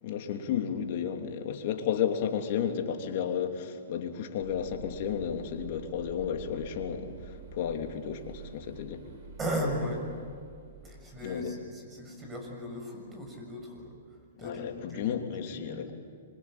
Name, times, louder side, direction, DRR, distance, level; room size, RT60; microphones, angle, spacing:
voice 1, 0.0-9.0 11.2-11.5 14.4-15.9, left 8 dB, 55° left, 4 dB, 2.9 m, -33 dB
sound 1, 4.4-11.8, right 5 dB, 60° right, 4.7 m, -48 dB
voice 2, 9.4-10.1 10.8-15.9, equal, 15° right, 1 dB, 6.8 m, -37 dB
25.0 x 24.5 x 9.0 m, 2.2 s
hypercardioid pair, 130°, 0 cm